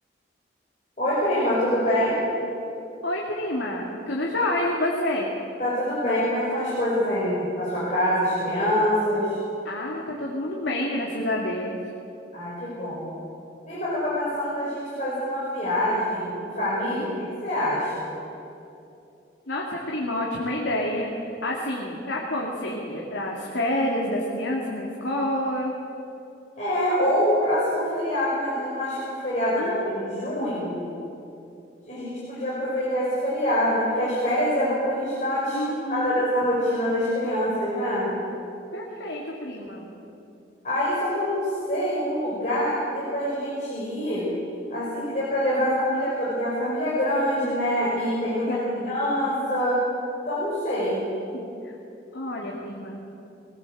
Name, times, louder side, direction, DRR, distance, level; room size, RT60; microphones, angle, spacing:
voice 1, 1.0-2.2 5.6-9.4 12.3-13.1 13.7-17.1 17.4-18.1 26.6-30.9 31.9-35.6 35.9-38.1 40.6-44.3 44.7-49.8 50.2-51.0, equal, 40° left, -8 dB, 5.9 m, -25 dB
voice 2, 3.0-5.3 9.6-11.8 16.9-17.3 19.5-25.7 29.6-30.6 35.5-36.3 38.7-39.9 45.6-46.1 48.5-49.0 51.3-51.7 52.1-53.0, left 1 dB, 80° left, -3 dB, 2.6 m, -29 dB
23.0 x 16.5 x 7.9 m, 2.8 s
head